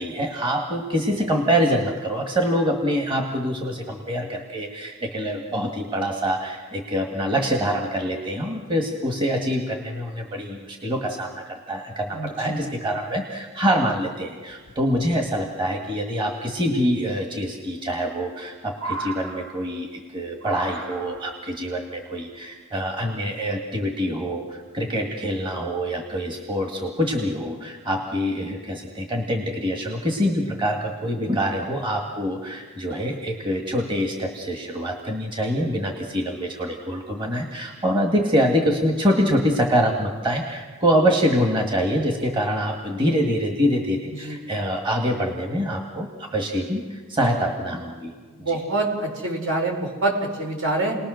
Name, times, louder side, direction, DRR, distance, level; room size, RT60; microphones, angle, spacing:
voice 1, 0.0-48.1 48.4-48.6, equal, 20° right, 2 dB, 1.8 m, -25 dB
voice 2, 12.1-12.7 44.2-44.4 48.4-51.0, right 2 dB, 70° right, 2 dB, 5.1 m, -26 dB
sound 1, 13.8-13.9 14.5-15.0 16.6-16.7 17.9-18.4 18.7-19.9 20.4-21.4 22.4-22.5, right 3 dB, 85° right, 4.9 m, -36 dB
30.0 x 20.0 x 6.5 m, 1.4 s
head